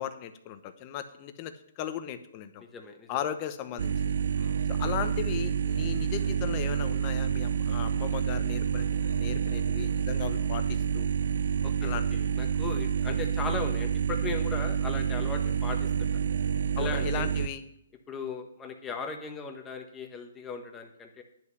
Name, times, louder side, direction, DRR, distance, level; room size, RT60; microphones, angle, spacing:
voice 1, 0.0-2.6 3.1-4.1 4.7-11.1 11.8-12.2 16.8-17.6, left 10 dB, 30° left, 9 dB, 0.9 m, -37 dB
voice 2, 2.6-3.1 4.3-4.6 11.6-16.1 16.8-17.3 18.1-21.2, left 4 dB, 10° left, 3 dB, 1.3 m, -38 dB
sound 1, 3.8-17.5, right 7 dB, 65° right, 0.6 m, -28 dB
10.5 x 5.7 x 8.2 m, 0.74 s
hypercardioid pair, 155°, 0 cm